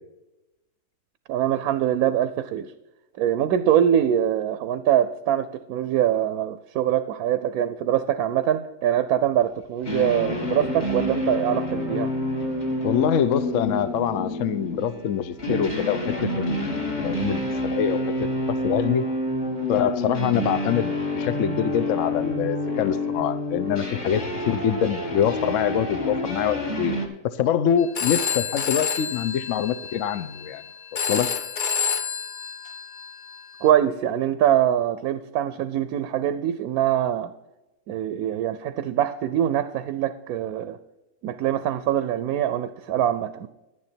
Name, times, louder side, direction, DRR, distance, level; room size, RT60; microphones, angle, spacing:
voice 1, 1.3-2.7 3.2-12.1 33.6-37.3 37.9-40.8 41.2-43.5, right 10 dB, 75° right, 12 dB, 1.1 m, -23 dB
sound 1, 9.8-27.1, left 1 dB, 30° left, 1.4 m, -28 dB
voice 2, 12.8-19.0 19.7-27.0 27.2-30.6 31.1-31.3, left 9 dB, 65° left, 12 dB, 0.9 m, -25 dB
Telephone, 27.8-33.7, left 7 dB, 50° left, 0.6 m, -29 dB
11.0 x 9.8 x 4.3 m, 1.0 s
omnidirectional pair, 1.6 m